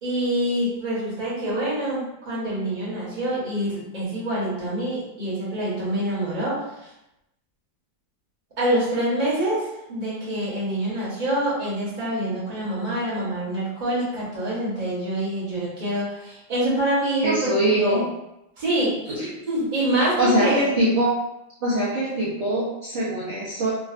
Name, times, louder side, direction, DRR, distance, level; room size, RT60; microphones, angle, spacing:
voice 1, 0.0-6.6 6.8-6.9 8.6-18.0 18.6-20.7, right 1 dB, 30° right, -7 dB, 0.9 m, -26 dB
voice 2, 17.2-18.0 19.2-19.3 20.0-21.1 21.6-23.7, right 1 dB, 65° right, -9 dB, 0.7 m, -23 dB
3.6 x 2.2 x 2.4 m, 0.88 s
omnidirectional pair, 2.0 m